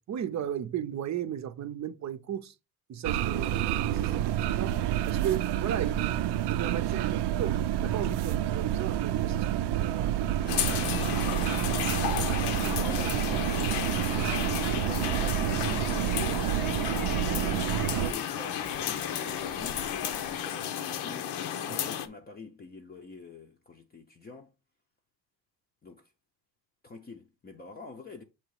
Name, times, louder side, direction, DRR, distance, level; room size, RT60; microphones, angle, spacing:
voice 1, 0.1-2.5 2.9-3.5 3.9-4.8 5.1-10.1 21.7-21.9, right 10 dB, 45° right, 0.6 m, -35 dB
sound 1, 3.0-18.1, right 11 dB, 85° right, 0.6 m, -29 dB
voice 2, 3.3-4.6 8.2-8.4 9.9-10.6 11.3-14.4 14.7-21.4 21.7-24.5 25.8-26.1 26.8-28.2, left 4 dB, 25° left, 0.6 m, -46 dB
sound 2, 10.3-20.8, left 8 dB, 60° left, 0.9 m, -41 dB
sound 3, 10.5-22.1, left 9 dB, 85° left, 0.9 m, -33 dB
7.6 x 3.0 x 4.7 m
cardioid pair, 175°, 40 cm